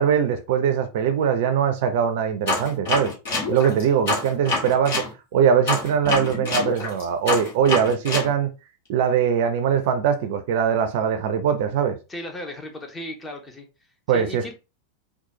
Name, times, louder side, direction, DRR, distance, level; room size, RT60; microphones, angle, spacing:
voice 1, 0.0-3.1 3.5-5.0 5.3-8.5 8.9-12.0 14.1-14.5, right 7 dB, 50° right, 0.4 m, -21 dB
sound 1, 2.5-5.1 5.7-8.3, left 2 dB, 55° left, 1.5 m, -26 dB
voice 2, 12.1-13.7 14.1-14.5, left 1 dB, 15° left, 0.8 m, -35 dB
3.9 x 2.3 x 2.7 m
figure-of-eight pair, 90°, 0 cm